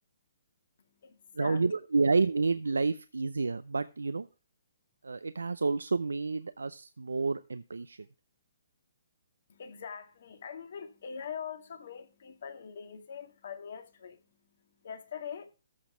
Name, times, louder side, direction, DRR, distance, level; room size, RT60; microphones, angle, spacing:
voice 1, 0.8-1.7 9.5-15.5, left 7 dB, 60° left, 2.0 m, -43 dB
voice 2, 1.4-4.3 5.0-8.0, right 4 dB, 85° right, 0.5 m, -29 dB
14.0 x 5.9 x 5.0 m
hypercardioid pair, 135°, 0 cm